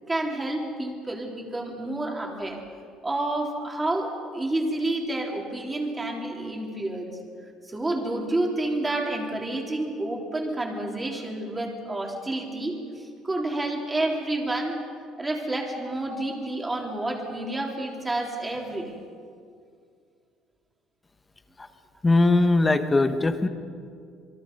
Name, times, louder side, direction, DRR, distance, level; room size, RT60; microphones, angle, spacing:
voice 1, 0.1-2.6 3.0-7.2 7.6-14.8 15.2-19.0, right 2 dB, 15° right, 0 dB, 3.4 m, -29 dB
voice 2, 22.0-23.5, left 2 dB, 15° left, 9 dB, 1.2 m, -20 dB
27.5 x 22.5 x 5.4 m, 2.2 s
cardioid pair, 145°, 0 cm